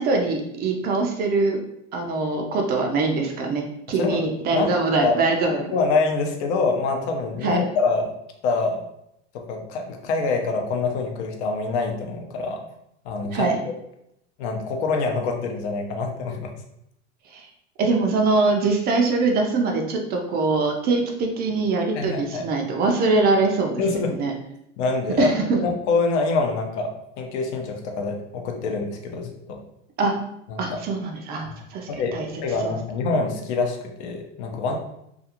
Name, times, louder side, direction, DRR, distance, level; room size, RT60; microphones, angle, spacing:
voice 1, 0.0-1.6 1.9-5.7 7.4-7.6 13.3-13.6 17.3-17.5 17.8-23.8 24.2-24.3 25.2-25.6 30.0-30.2 30.6-32.3 32.6-32.7, right 3 dB, 30° right, 2 dB, 0.4 m, -23 dB
voice 2, 4.0-4.7 5.0-5.1 5.7-8.1 8.4-8.9 9.3-12.6 13.0-13.7 14.4-16.5 21.9-22.5 23.8-24.2 24.8-25.3 25.6-29.6 30.5-30.8 31.4-31.5 31.9-32.1 32.4-34.8, left 4 dB, 70° left, 3 dB, 0.7 m, -25 dB
2.4 x 2.4 x 2.8 m, 0.78 s
supercardioid pair, 120°, 35 cm